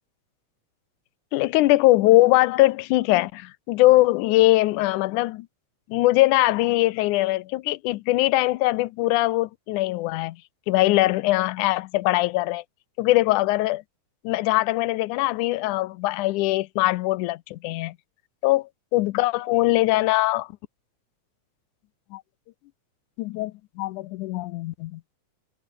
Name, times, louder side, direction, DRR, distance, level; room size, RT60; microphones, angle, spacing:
voice 1, 1.3-5.5 5.9-10.4 10.7-12.6 13.0-13.8 14.2-17.9 18.4-20.5 22.1-22.2 23.2-23.5 23.8-25.0, left 18 dB, 90° left, 2.2 m, -21 dB
omnidirectional pair, 3.4 m